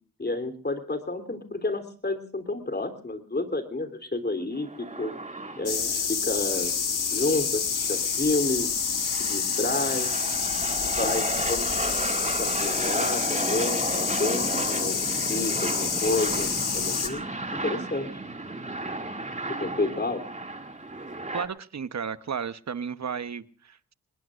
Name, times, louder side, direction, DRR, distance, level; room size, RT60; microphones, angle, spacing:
voice 1, 0.2-4.7 5.0-5.1 5.6-6.7 7.1-8.7 9.2-10.1 10.8-11.7 12.4-15.0 15.3-17.2 17.6-18.1 19.6-20.2, left 2 dB, 30° left, 8 dB, 3.4 m, -30 dB
sound 1, 4.5-21.5, right 2 dB, 20° right, 2.5 m, -34 dB
sound 2, 5.7-17.1, left 6 dB, 70° left, 2.3 m, -28 dB
voice 2, 21.3-23.9, right 6 dB, 55° right, 13 dB, 1.1 m, -33 dB
26.5 x 20.5 x 2.5 m, 0.40 s
cardioid pair, 70°, 34 cm